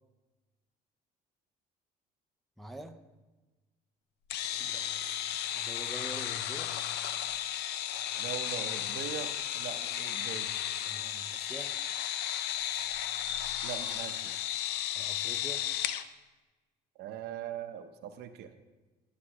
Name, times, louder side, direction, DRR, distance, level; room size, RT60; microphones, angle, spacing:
voice 1, 2.6-3.0 5.5-6.8 10.9-11.9 15.0-15.8, right 1 dB, ahead, 6 dB, 0.5 m, -45 dB
sound 1, 4.3-16.0, left 11 dB, 80° left, 0.5 m, -34 dB
voice 2, 8.2-10.5 13.6-14.4 17.0-18.5, right 10 dB, 80° right, 8 dB, 0.7 m, -41 dB
9.7 x 8.4 x 2.9 m, 1.2 s
cardioid pair, 110°, 17 cm